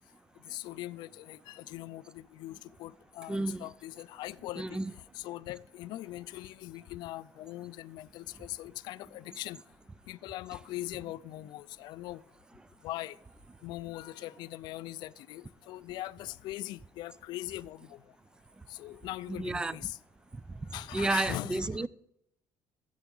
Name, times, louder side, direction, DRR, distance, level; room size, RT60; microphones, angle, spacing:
voice 1, 0.5-4.8 5.1-9.6 10.1-12.2 12.8-13.2 13.6-18.0 18.7-20.0 20.7-21.9, left 16 dB, 75° left, 0.4 m, -41 dB
voice 2, 3.3-3.7 4.6-4.9 19.4-19.8 20.9-21.9, right 2 dB, 10° right, 0.3 m, -31 dB
12.0 x 8.2 x 3.8 m
cardioid pair, 125°, 8 cm